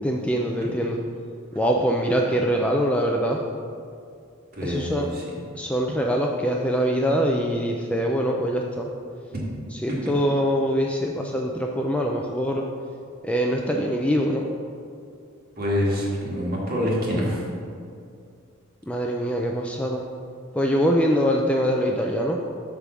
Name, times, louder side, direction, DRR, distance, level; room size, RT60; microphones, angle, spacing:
voice 1, 0.0-1.0 1.6-3.4 4.6-5.1 5.5-8.9 9.8-12.6 13.2-14.5 18.9-20.0 20.6-22.4, equal, 5° left, 0 dB, 0.3 m, -23 dB
voice 2, 4.5-5.2 9.3-9.4 15.6-17.4, equal, 45° right, -4 dB, 1.6 m, -26 dB
8.4 x 3.4 x 6.1 m, 2.4 s
head